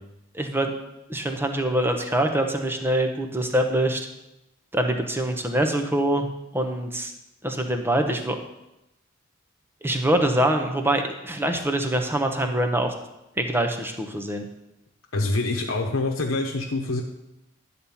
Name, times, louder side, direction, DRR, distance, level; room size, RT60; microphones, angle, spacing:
voice 1, 0.3-0.7 1.1-4.1 4.7-6.3 6.5-7.1 7.4-8.4 9.8-12.9 13.4-14.4, right 1 dB, 10° right, 5 dB, 0.9 m, -24 dB
voice 2, 15.1-17.0, left 2 dB, 85° left, 0 dB, 0.9 m, -25 dB
11.0 x 4.2 x 7.1 m, 0.91 s
head